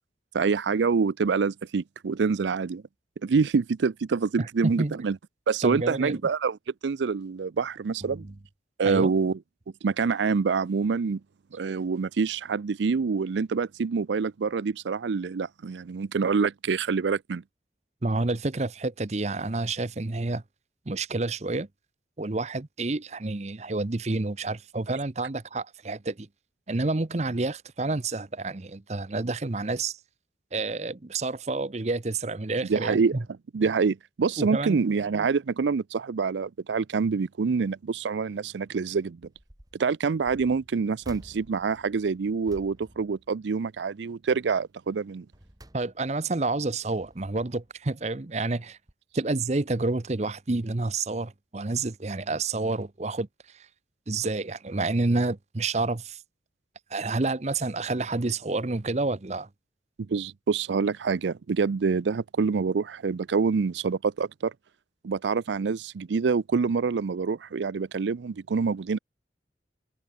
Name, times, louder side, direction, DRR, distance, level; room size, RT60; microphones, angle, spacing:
voice 1, 0.3-2.8 3.2-5.2 5.5-6.6 6.8-8.2 8.8-9.4 9.8-11.2 11.5-17.4 32.7-33.2 33.5-39.2 39.8-45.3 60.1-64.5 65.0-69.0, right 5 dB, 80° right, 0.5 m, -26 dB
voice 2, 4.4-5.0 5.6-6.2 8.2-8.3 8.8-9.1 18.0-20.4 20.9-21.7 22.2-26.3 26.7-30.0 30.5-33.2 34.4-34.8 45.7-48.8 49.1-53.3 54.1-56.2 56.9-59.5, right 3 dB, 40° right, 0.8 m, -29 dB
sound 1, 39.1-39.8 40.2-43.9 44.2-44.6 45.1-46.3 46.8-47.8 48.5-48.6 48.9-49.0, right 1 dB, 20° right, 1.5 m, -51 dB
head